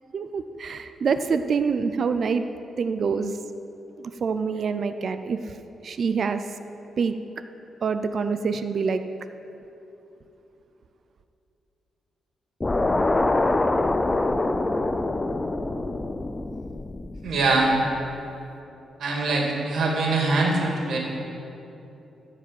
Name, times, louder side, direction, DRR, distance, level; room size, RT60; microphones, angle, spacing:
voice 1, 0.1-2.5 2.8-3.4 4.0-5.5 5.8-6.4 7.0-7.1 7.8-9.0, right 5 dB, 50° right, 9 dB, 0.5 m, -26 dB
sound 1, 12.6-17.9, left 2 dB, 15° left, 0.4 m, -25 dB
voice 2, 17.2-17.7 19.0-21.0, right 3 dB, 70° right, -2 dB, 2.5 m, -23 dB
14.5 x 5.0 x 8.0 m, 2.9 s
cardioid pair, 125°, 0 cm